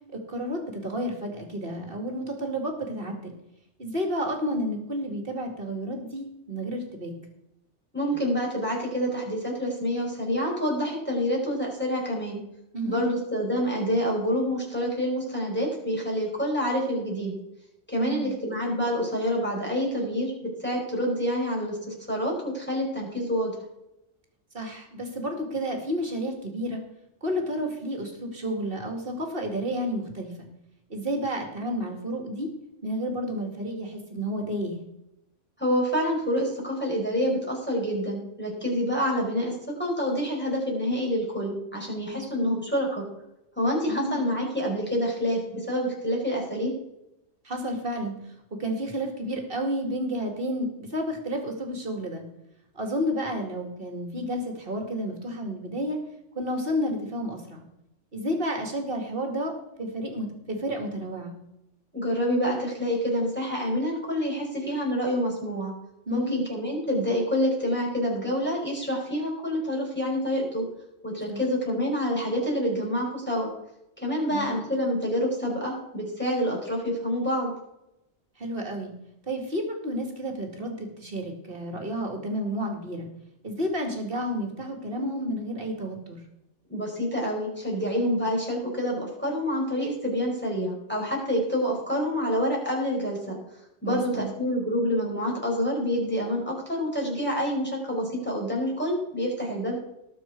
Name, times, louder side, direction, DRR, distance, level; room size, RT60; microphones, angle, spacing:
voice 1, 0.1-3.3 3.8-7.1 12.7-13.1 17.9-18.4 24.5-26.8 27.2-30.5 30.9-32.5 32.8-34.8 42.1-42.6 43.9-44.2 47.4-48.1 48.6-52.2 52.7-56.0 56.3-57.6 58.1-59.5 59.8-61.3 66.1-66.4 71.3-71.4 74.3-74.6 78.4-78.9 79.3-83.1 83.4-86.2 93.8-94.3, equal, 50° right, 3 dB, 2.6 m, -31 dB
voice 2, 7.9-12.4 12.8-17.3 17.9-23.5 35.6-43.1 43.6-46.7 61.9-65.7 66.1-70.6 71.0-73.5 74.0-77.5 86.7-93.4 93.8-99.8, equal, 10° left, -2 dB, 4.6 m, -27 dB
19.5 x 6.6 x 4.7 m, 0.86 s
omnidirectional pair, 1.2 m